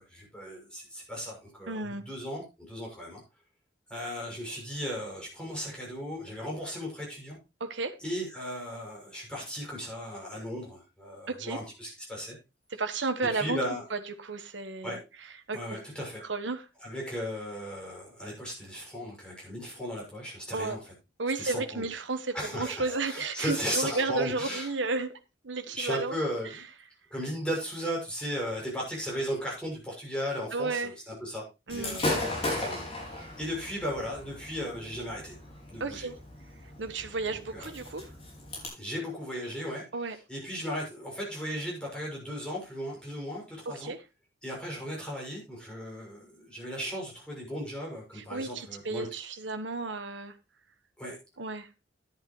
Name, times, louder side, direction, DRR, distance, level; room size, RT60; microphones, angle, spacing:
voice 1, 0.0-3.2 3.9-7.4 8.0-12.3 13.3-13.8 14.8-15.0 15.5-16.2 16.8-20.8 21.4-21.9 22.3-24.7 25.7-26.6 27.1-31.4 31.7-32.2 32.4-32.8 33.1-35.4 35.7-36.1 37.3-37.7 38.7-43.9 44.4-49.1 51.0-51.2, equal, 5° left, 6.4 m, -36 dB
voice 2, 1.7-2.0 7.6-7.9 11.3-11.6 12.7-13.6 13.9-15.0 15.5-15.8 16.3-16.6 20.5-20.8 21.2-25.2 25.4-26.2 30.5-30.9 31.7-32.0 35.8-36.1 36.8-38.1 39.9-40.2 43.7-44.0 48.1-50.4 51.4-51.7, right 3 dB, 85° right, 1.2 m, -32 dB
Gunshot gunfire / Fireworks, 31.7-38.7, left 2 dB, 30° left, 5.0 m, -36 dB
11.0 x 10.5 x 3.0 m
head